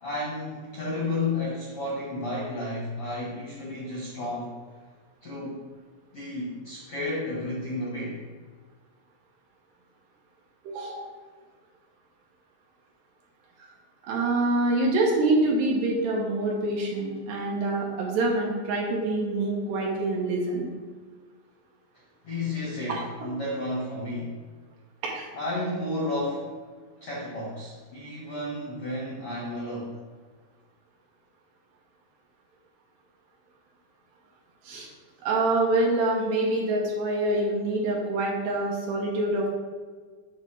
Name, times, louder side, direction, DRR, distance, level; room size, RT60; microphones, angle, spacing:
voice 1, 0.0-4.6 5.2-5.6 6.1-8.2 22.2-24.3 25.3-26.4 27.0-29.9, left 2 dB, 65° left, -6 dB, 1.4 m, -32 dB
voice 2, 10.6-11.1 14.0-20.7 22.9-23.3 25.0-25.3 34.6-34.9 35.2-39.5, right 2 dB, 70° right, -2 dB, 2.9 m, -26 dB
9.0 x 3.6 x 6.1 m, 1.5 s
omnidirectional pair, 5.4 m